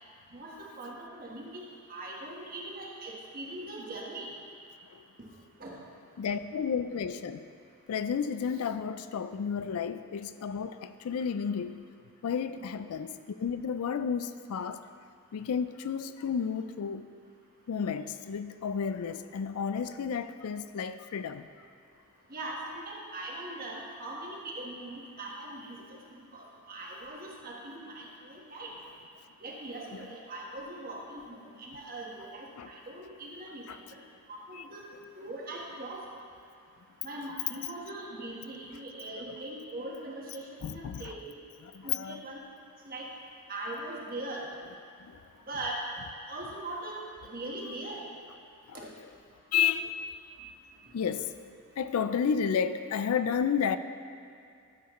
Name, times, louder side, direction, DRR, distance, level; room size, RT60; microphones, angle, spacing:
voice 1, 0.3-1.5 1.9-4.3 5.6-5.8 22.3-28.7 29.4-33.6 33.9-34.0 34.3-34.8 35.2-36.0 37.0-41.2 41.8-42.4 42.8-43.1 43.5-44.5 45.5-45.8 46.3-47.0 47.3-48.0 48.7-48.9, right 2 dB, 40° right, -2 dB, 1.3 m, -41 dB
voice 2, 6.2-7.5 7.9-11.8 12.2-14.8 15.3-17.0 17.7-21.5 25.8-25.9 29.9-30.1 32.6-32.7 33.7-33.8 34.5-34.6 40.6-41.0 41.6-42.2 45.0-45.2 48.7-48.9 49.5-50.2 50.9-51.3 51.8-53.8, left 7 dB, 75° left, 11 dB, 0.4 m, -32 dB
12.5 x 7.1 x 3.1 m, 2.5 s
head